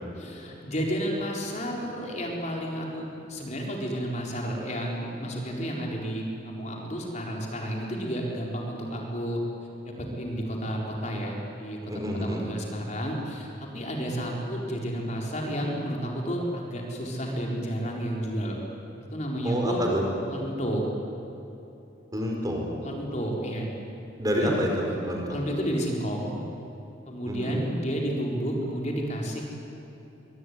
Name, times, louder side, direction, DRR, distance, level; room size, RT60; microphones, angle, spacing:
voice 1, 0.2-9.4 9.8-11.8 12.1-18.6 19.1-19.8 20.3-20.8 22.8-23.7 24.3-24.6 25.3-26.4 27.1-29.5, equal, 40° left, -1 dB, 4.4 m, -31 dB
voice 2, 11.9-12.4 19.4-20.0 22.1-22.6 24.2-25.4 27.3-27.6, equal, 20° right, 0 dB, 4.8 m, -28 dB
24.0 x 23.5 x 9.7 m, 3.0 s
head